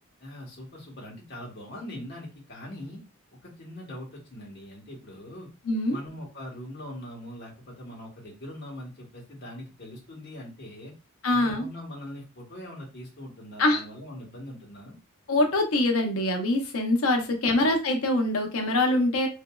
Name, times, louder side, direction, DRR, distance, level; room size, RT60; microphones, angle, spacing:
voice 1, 0.2-3.0 3.4-5.5 5.9-10.9 11.3-15.0 17.5-17.6, left 1 dB, 50° left, -3 dB, 1.1 m, -42 dB
voice 2, 5.6-6.0 11.2-11.7 13.6-13.8 15.3-19.3, left 1 dB, 75° left, 4 dB, 0.7 m, -24 dB
2.9 x 2.6 x 2.2 m, 0.31 s
head